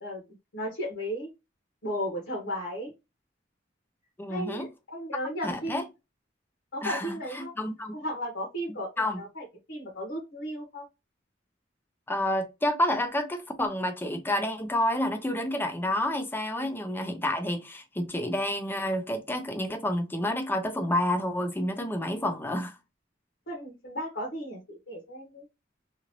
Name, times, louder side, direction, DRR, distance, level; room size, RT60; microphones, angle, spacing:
voice 1, 0.5-1.3 1.8-2.9 4.3-4.6 4.9-5.8 6.7-7.5 7.9-10.8 23.5-25.5, equal, 70° left, 1.1 m, -35 dB
voice 2, 4.2-4.7 5.4-5.8 6.8-8.0 9.0-9.2 12.1-22.8, left 1 dB, 10° left, 0.5 m, -29 dB
2.8 x 2.5 x 2.9 m
head